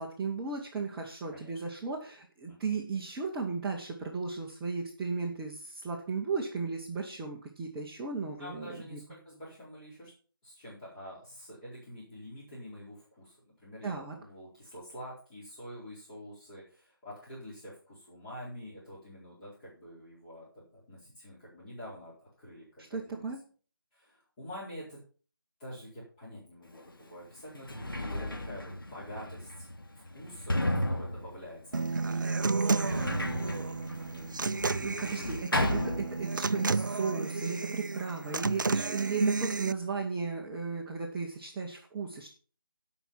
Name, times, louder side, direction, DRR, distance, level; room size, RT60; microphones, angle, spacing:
voice 1, 0.0-9.0 13.8-14.2 22.8-23.4 34.8-42.3, right 4 dB, 10° right, -2 dB, 0.8 m, -35 dB
voice 2, 8.4-10.1 10.4-23.3 23.9-25.0 25.6-29.7 30.1-32.9 33.6-34.0, equal, 20° left, -10 dB, 4.8 m, -47 dB
Sliding door, 26.7-26.8 27.4-36.6 36.9-37.7, left 1 dB, 70° left, 2.6 m, -35 dB
Human voice / Acoustic guitar, 31.7-39.7, right 4 dB, 60° right, 0.4 m, -31 dB
14.0 x 5.9 x 5.8 m, 0.40 s
figure-of-eight pair, 160°, 12 cm